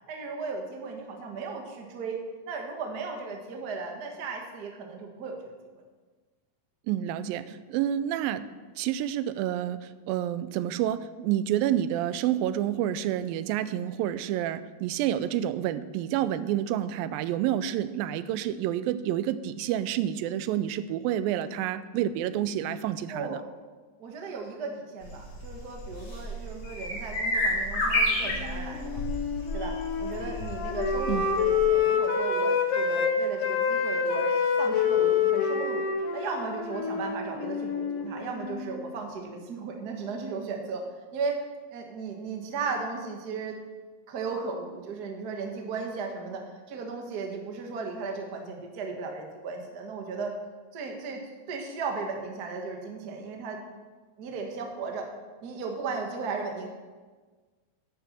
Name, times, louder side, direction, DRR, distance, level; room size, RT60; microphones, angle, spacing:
voice 1, 0.1-2.2 2.4-5.8 23.1-23.4 24.0-29.0 29.5-35.9 36.1-40.8 41.1-41.4 41.7-43.6 44.1-50.3 50.7-51.2 51.5-53.6 54.2-55.1 55.4-56.7, right 4 dB, 60° right, 2 dB, 1.0 m, -36 dB
voice 2, 6.9-8.5 8.8-23.4 31.1-31.3, right 11 dB, 90° right, 14 dB, 2.3 m, -29 dB
sound 1, 25.0-31.6, left 1 dB, 45° left, 3.3 m, -31 dB
Wind instrument woodwind instrument, 28.2-33.1 33.4-38.7, left 6 dB, 75° left, 3.0 m, -27 dB
10.5 x 6.9 x 7.2 m, 1.4 s
omnidirectional pair, 4.0 m